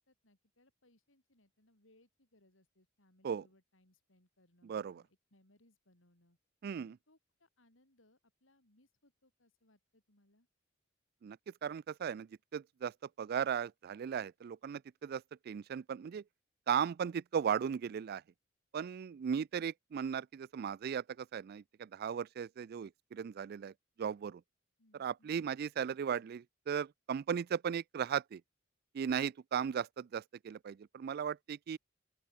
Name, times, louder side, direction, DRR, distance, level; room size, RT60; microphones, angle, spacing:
voice 1, 0.0-6.4 6.8-10.5 24.8-25.5, left 1 dB, 70° left, 5.1 m, -70 dB
voice 2, 4.6-5.0 6.6-6.9 11.2-12.9 13.2-16.2 16.7-18.2 18.7-23.7 24.0-24.4 25.0-28.4 28.9-31.8, right 7 dB, 50° right, 0.3 m, -37 dB
open air
head